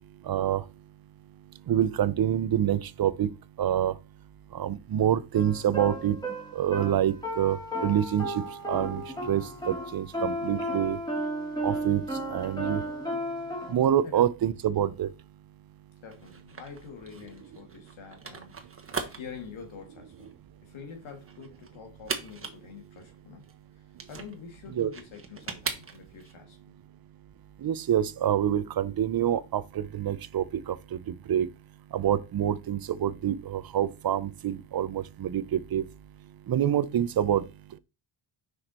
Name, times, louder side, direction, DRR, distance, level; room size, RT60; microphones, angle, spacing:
voice 1, 0.3-0.6 1.7-3.3 3.6-3.9 4.5-6.2 6.5-8.2 8.7-11.0 11.6-12.0 12.3-12.8 13.7-15.1 24.7-24.9 27.6-30.7 31.3-31.5 31.9-35.8 36.5-37.4, right 10 dB, 50° right, 0.7 m, -26 dB
sound 1, 5.3-13.7, right 1 dB, 10° left, 2.4 m, -34 dB
voice 2, 16.0-18.5 19.1-20.3 20.6-23.4 24.1-26.6, left 6 dB, 80° left, 2.5 m, -46 dB
sound 2, 16.1-26.3, right 5 dB, 30° right, 1.3 m, -40 dB
6.1 x 4.9 x 4.3 m
cardioid pair, 85°, 47 cm